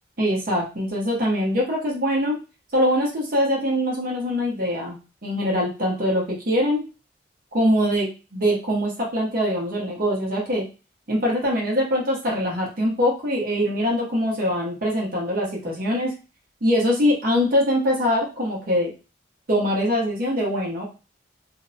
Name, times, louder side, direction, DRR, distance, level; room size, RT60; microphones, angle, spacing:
voice 1, 0.2-2.4 2.7-6.8 7.5-10.6 11.1-16.2 16.6-18.9 19.5-20.8, equal, 55° right, -3 dB, 0.8 m, -23 dB
2.5 x 2.0 x 2.6 m, 0.31 s
head